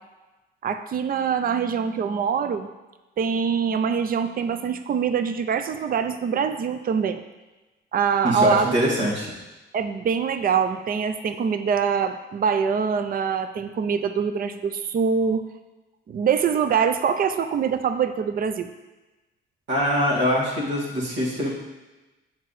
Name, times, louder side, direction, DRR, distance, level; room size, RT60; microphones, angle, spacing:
voice 1, 0.6-2.7 3.2-7.2 7.9-8.7 9.7-15.5 16.1-18.7, right 6 dB, 45° right, 10 dB, 0.5 m, -24 dB
voice 2, 8.2-9.3 19.7-21.5, equal, 70° right, -5 dB, 2.0 m, -23 dB
7.4 x 4.7 x 4.1 m, 1.1 s
cardioid pair, 90°, 20 cm